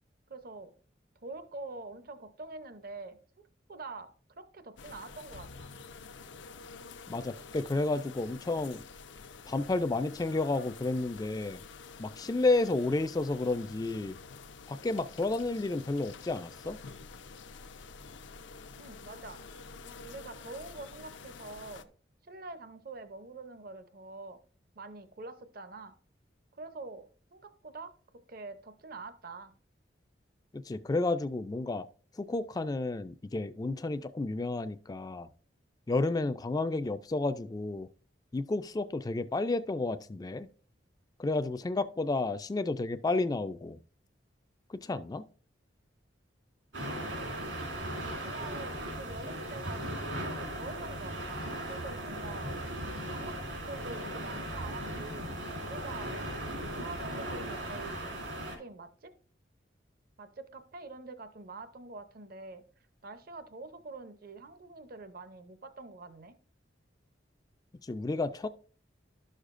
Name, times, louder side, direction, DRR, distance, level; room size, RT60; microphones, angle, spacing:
voice 1, 0.3-0.7 1.2-3.2 3.7-5.7 18.8-19.4 20.0-21.9 22.2-24.4 24.7-25.9 26.6-29.5 46.8-47.1 48.2-49.8 50.2-52.6 53.1-55.3 55.6-56.2 56.8-59.1 60.2-62.6 63.0-66.3, right 3 dB, 50° right, 0.7 m, -45 dB
sound 1, 4.8-21.8, left 4 dB, 75° left, 0.6 m, -48 dB
voice 2, 7.1-8.8 9.5-11.6 12.0-14.2 14.7-16.8 30.5-31.9 32.2-35.3 35.9-37.9 38.3-40.5 41.2-43.8 44.7-45.3 67.8-68.5, left 2 dB, 20° left, 0.3 m, -31 dB
sound 2, 46.7-58.6, right 1 dB, 80° right, 2.8 m, -37 dB
11.5 x 6.5 x 2.5 m
head